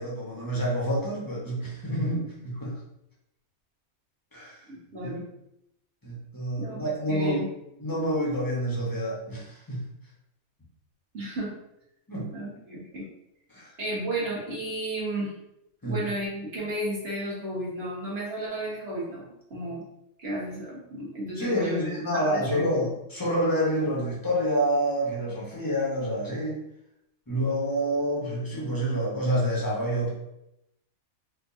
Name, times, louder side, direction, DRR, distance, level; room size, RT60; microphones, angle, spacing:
voice 1, 0.0-2.8 4.3-4.6 5.0-5.1 6.0-7.5 7.8-9.8 12.1-12.3 13.5-13.7 15.8-16.0 21.4-26.6 27.3-30.1, equal, 15° left, -6 dB, 0.9 m, -28 dB
voice 2, 4.7-5.2 6.6-6.8 7.1-7.5 11.1-11.5 12.3-13.0 13.8-15.3 15.8-19.8 20.2-21.8 22.1-22.9, right 1 dB, 45° right, -6 dB, 1.6 m, -33 dB
4.4 x 2.5 x 2.6 m, 0.82 s
omnidirectional pair, 1.5 m